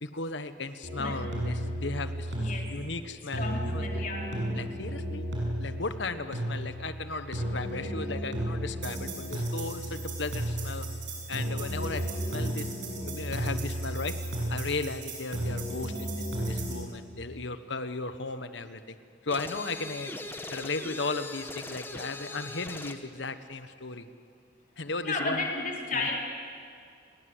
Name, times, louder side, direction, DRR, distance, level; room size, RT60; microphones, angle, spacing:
voice 1, 0.0-4.1 4.5-5.3 5.6-10.9 11.3-14.2 14.5-19.0 19.2-20.1 20.5-24.1 24.8-25.5 25.9-26.1, left 3 dB, 70° left, 10 dB, 1.4 m, -36 dB
sound 1, 0.8-16.8, right 1 dB, 75° right, 7.6 m, -33 dB
voice 2, 2.4-2.7 3.3-4.3 25.0-26.2, left 3 dB, 45° left, -1 dB, 4.1 m, -33 dB
sound 2, 19.3-23.1, left 2 dB, 10° left, 1.2 m, -40 dB
29.5 x 21.5 x 8.1 m, 2.3 s
head